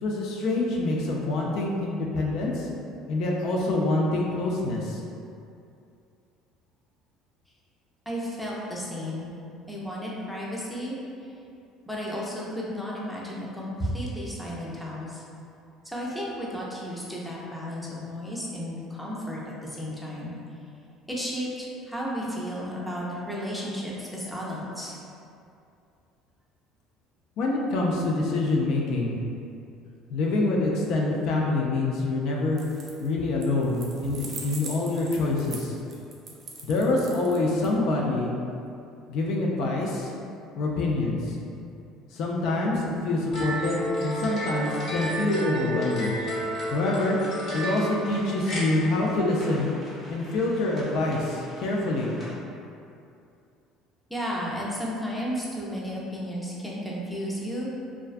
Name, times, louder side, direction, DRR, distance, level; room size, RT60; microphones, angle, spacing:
voice 1, 0.0-2.7 3.1-5.0 27.4-29.1 30.1-32.6 33.0-35.7 36.6-38.3 39.1-40.1 40.6-41.4 42.1-46.1 46.7-47.2 47.5-49.7 50.1-52.1, left 2 dB, 65° left, -2 dB, 0.3 m, -26 dB
voice 2, 8.1-9.3 9.7-11.0 11.9-15.2 15.8-20.3 21.1-25.0 54.1-57.7, equal, 5° left, -5 dB, 0.5 m, -33 dB
sound 1, 32.5-33.1 33.4-37.7, right 3 dB, 45° right, 0.4 m, -41 dB
sound 2, 43.3-48.6, equal, 50° left, 0.9 m, -31 dB
sound 3, 46.7-52.3, left 1 dB, 20° left, 0.9 m, -46 dB
2.4 x 2.1 x 2.4 m, 2.6 s
supercardioid pair, 95°, 0 cm